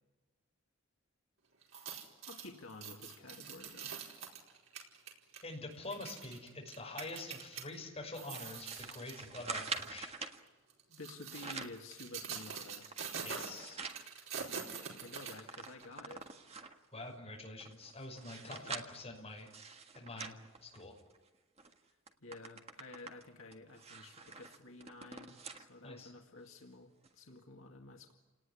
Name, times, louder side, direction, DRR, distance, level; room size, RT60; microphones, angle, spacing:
sound 1, 1.6-7.6 8.1-9.2 9.7-9.9 10.7-15.8 16.2-16.3, right 6 dB, 80° right, 4.7 m, -45 dB
voice 1, 2.3-3.9 10.9-13.0 15.0-16.4 18.4-18.8 22.2-28.1, left 2 dB, 75° left, 2 dB, 2.2 m, -51 dB
voice 2, 5.4-10.1 13.2-13.8 16.9-20.9 25.8-26.1, left 2 dB, 30° left, 0 dB, 6.0 m, -46 dB
sound 2, 8.3-10.4 11.1-11.8 12.3-14.0 14.5-14.6 14.8-16.8 17.4-21.2 21.6-21.7 22.1-25.7 26.1-26.2 27.0-27.1, right 4 dB, 30° right, 1.6 m, -46 dB
30.0 x 19.0 x 10.0 m, 1.2 s
head